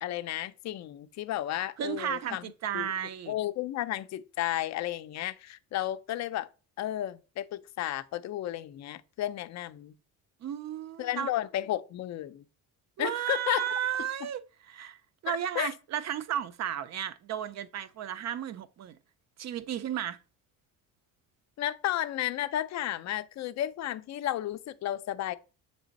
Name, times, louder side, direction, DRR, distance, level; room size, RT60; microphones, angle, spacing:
voice 1, 0.0-2.5 2.7-2.9 3.3-6.5 6.8-9.9 11.0-12.4 13.0-13.6 15.3-15.7 21.6-25.3, left 13 dB, 50° left, 0.5 m, -33 dB
voice 2, 1.8-3.3 10.4-11.3 13.0-19.0 19.4-20.2, right 10 dB, 45° right, 0.6 m, -34 dB
7.2 x 3.4 x 4.0 m
cardioid pair, 130°, 37 cm